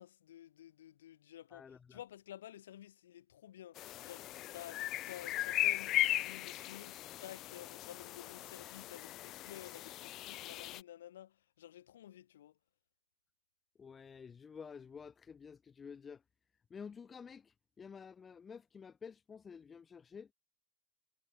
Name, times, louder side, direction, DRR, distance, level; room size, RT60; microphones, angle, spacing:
voice 1, 0.0-12.6, left 12 dB, 60° left, 4.4 m, -52 dB
voice 2, 1.5-2.0 13.8-16.2 16.7-20.3, left 6 dB, 20° left, 2.4 m, -51 dB
sound 1, 3.8-10.8, left 15 dB, 35° left, 1.2 m, -38 dB
figure-of-eight pair, 90°, 0 cm